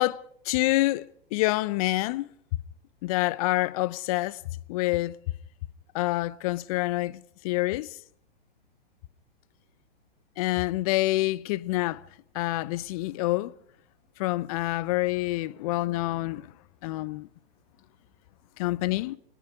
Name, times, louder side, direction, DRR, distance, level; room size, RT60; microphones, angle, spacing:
voice 1, 0.0-2.3 3.0-4.4 4.7-5.2 5.9-8.0 10.4-12.0 12.3-13.5 14.2-16.5 16.8-17.3 18.6-19.2, left 19 dB, 35° left, 0.7 m, -27 dB
27.5 x 20.5 x 4.8 m
figure-of-eight pair, 115°, 32 cm